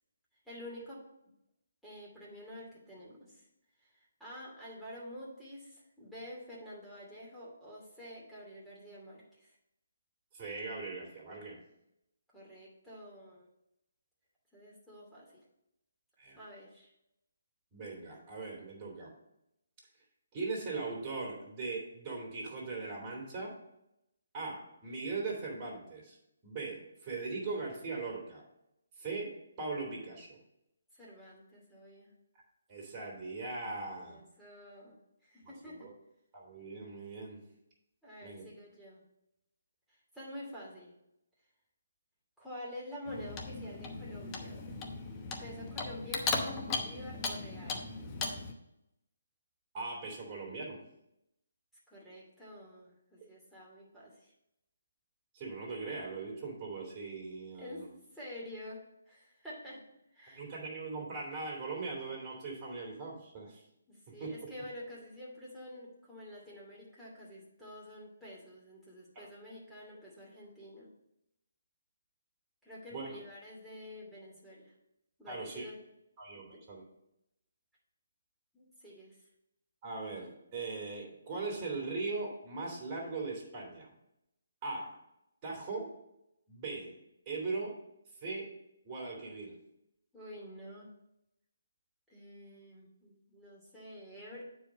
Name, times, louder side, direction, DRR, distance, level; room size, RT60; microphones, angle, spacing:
voice 1, 0.4-1.0 1.8-3.4 3.9-9.5 12.3-13.5 14.5-15.4 16.4-16.9 30.9-32.1 34.0-35.0 35.2-35.9 38.0-39.0 39.9-40.9 42.4-44.6 45.4-47.8 51.9-54.3 57.6-57.8 58.1-59.8 60.1-60.5 63.9-70.9 72.6-74.7 75.2-75.8 76.3-76.6 78.5-79.1 90.1-90.9 92.1-94.4, left 1 dB, ahead, -8 dB, 2.7 m, -48 dB
voice 2, 10.3-11.6 16.2-16.4 17.7-19.1 20.3-23.5 24.3-26.2 26.4-28.4 29.0-30.4 32.7-34.2 35.4-35.9 36.3-37.4 38.2-38.5 49.7-50.8 55.3-57.9 60.3-63.6 64.2-64.3 69.1-69.3 72.9-73.1 75.3-75.7 76.2-76.8 79.8-83.9 84.6-85.0 85.4-85.9 86.5-87.0 87.2-87.7 88.2-88.5 88.8-89.6, right 3 dB, 25° right, -2 dB, 2.9 m, -40 dB
Clock, 43.1-48.5, left 3 dB, 20° left, 0.9 m, -37 dB
8.7 x 4.8 x 5.2 m, 0.83 s
figure-of-eight pair, 145°, 0 cm